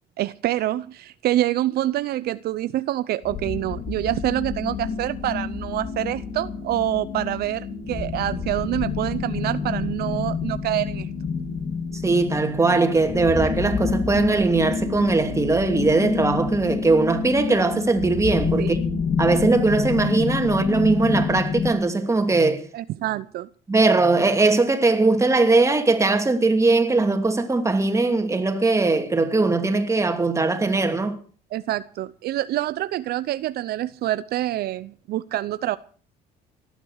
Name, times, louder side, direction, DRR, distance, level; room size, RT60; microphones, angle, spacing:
voice 1, 0.2-11.1 18.6-18.8 22.7-23.5 31.5-35.8, right 14 dB, 70° right, 0.7 m, -26 dB
sound 1, 3.2-21.7, left 5 dB, 45° left, 3.6 m, -28 dB
voice 2, 12.0-18.8 19.2-22.6 23.7-31.2, right 3 dB, 15° right, 2.8 m, -20 dB
18.5 x 11.0 x 6.5 m
cardioid pair, 110°, 17 cm